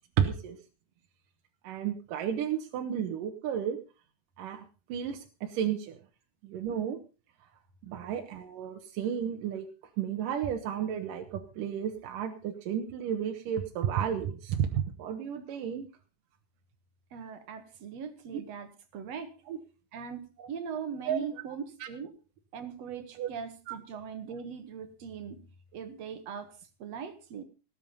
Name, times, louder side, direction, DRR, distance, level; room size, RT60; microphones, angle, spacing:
voice 1, 0.2-0.6 1.6-3.8 4.4-4.6 4.9-6.0 6.4-7.0 7.8-9.7 10.0-15.9 18.3-18.4 19.5-19.6 21.1-21.2 21.8-21.9 23.2-23.3 23.7-23.8, right 9 dB, 75° right, 4 dB, 2.7 m, -32 dB
voice 2, 17.1-19.3 19.9-22.1 22.5-25.4 25.7-26.5 26.8-27.4, right 6 dB, 55° right, 9 dB, 2.6 m, -40 dB
18.0 x 9.4 x 5.4 m, 0.35 s
omnidirectional pair, 3.9 m